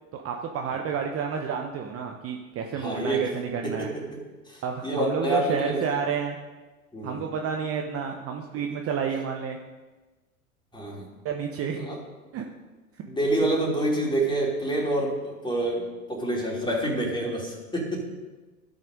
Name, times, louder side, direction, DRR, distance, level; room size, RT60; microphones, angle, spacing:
voice 1, 0.2-3.9 4.6-6.4 7.0-9.6 11.2-11.9 12.3-12.4, right 6 dB, 30° right, 3 dB, 0.9 m, -30 dB
voice 2, 2.8-3.3 3.6-4.2 4.5-5.8 6.9-7.2 10.7-11.1 11.8-12.0 13.0-18.1, right 1 dB, 10° left, -2 dB, 3.4 m, -27 dB
12.0 x 6.4 x 5.2 m, 1.2 s
hypercardioid pair, 85°, 43 cm